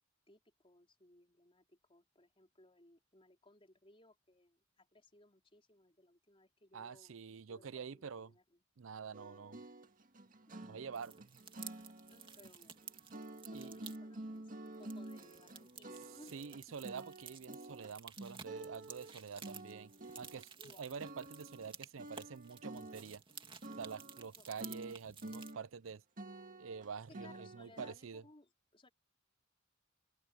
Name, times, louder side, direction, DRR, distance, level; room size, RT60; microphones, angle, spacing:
voice 1, 0.3-7.2 7.5-8.6 10.6-10.7 12.1-12.9 13.5-16.4 16.8-16.9 20.6-20.9 24.3-24.8 27.1-28.9, left 2 dB, 30° left, 4.7 m, -63 dB
voice 2, 6.7-8.3 8.8-9.6 10.6-11.4 13.5-13.9 16.3-19.9 20.2-20.5 20.8-23.2 23.8-26.0 26.6-28.2, right 6 dB, 90° right, 0.6 m, -47 dB
sound 1, 9.1-20.7 21.0-21.7 22.0-24.3 24.6-25.9 26.2-27.9, right 2 dB, 45° right, 1.9 m, -50 dB
sound 2, 10.9-14.0 14.7-25.5, right 6 dB, 25° right, 2.5 m, -54 dB
open air
head